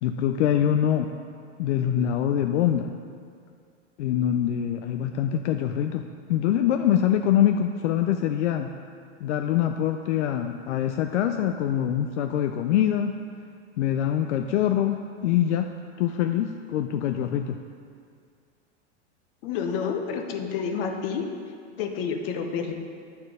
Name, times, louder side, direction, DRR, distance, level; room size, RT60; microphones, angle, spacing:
voice 1, 0.0-1.1 1.6-2.9 4.0-6.0 6.3-8.7 9.2-13.1 13.8-15.7 16.0-17.6, left 10 dB, 80° left, 6 dB, 0.5 m, -24 dB
voice 2, 19.4-21.2 21.8-22.8, left 6 dB, 55° left, 4 dB, 1.0 m, -29 dB
9.5 x 4.4 x 5.0 m, 2.2 s
hypercardioid pair, 125°, 34 cm